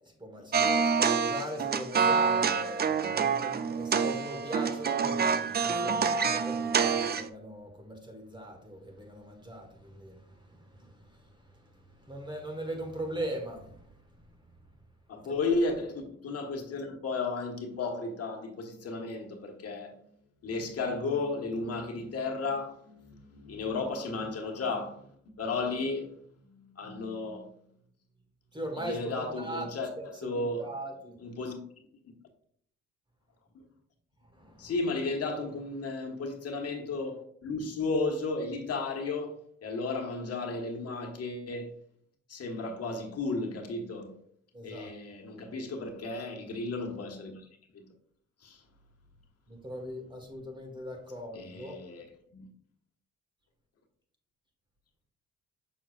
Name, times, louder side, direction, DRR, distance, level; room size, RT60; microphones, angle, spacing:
voice 1, 0.0-13.9 15.2-15.4 23.5-23.6 28.5-29.7 30.0-31.2 34.3-34.7 44.5-44.9 49.5-51.8, right 1 dB, 15° right, 1.4 m, -40 dB
sound 1, 0.5-7.3, right 6 dB, 35° right, 0.5 m, -27 dB
voice 2, 15.1-19.9 20.4-27.5 28.8-30.7 31.2-31.6 32.0-32.1 33.5-33.6 34.6-41.7 42.3-44.1 44.6-47.5 47.7-47.8 48.4-48.6 51.3-52.0 52.3-52.5, left 3 dB, 55° left, 1.3 m, -34 dB
6.3 x 6.3 x 2.4 m
cardioid pair, 90°, 30 cm